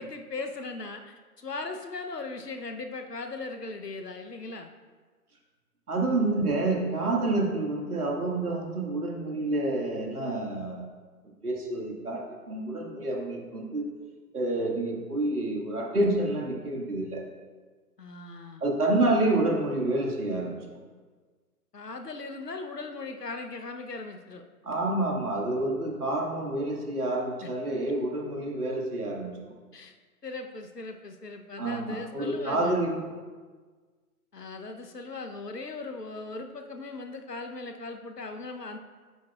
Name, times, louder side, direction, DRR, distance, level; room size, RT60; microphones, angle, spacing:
voice 1, 0.0-4.7 18.0-18.6 21.7-24.4 27.4-27.5 29.7-29.9 30.2-32.8 34.3-38.8, left 3 dB, 85° left, 6 dB, 1.0 m, -38 dB
voice 2, 5.9-10.9 11.4-13.9 14.3-17.2 18.6-20.6 24.6-29.3 31.6-33.0, right 2 dB, 70° right, -1 dB, 2.1 m, -28 dB
9.3 x 6.5 x 2.4 m, 1.4 s
figure-of-eight pair, 135°, 47 cm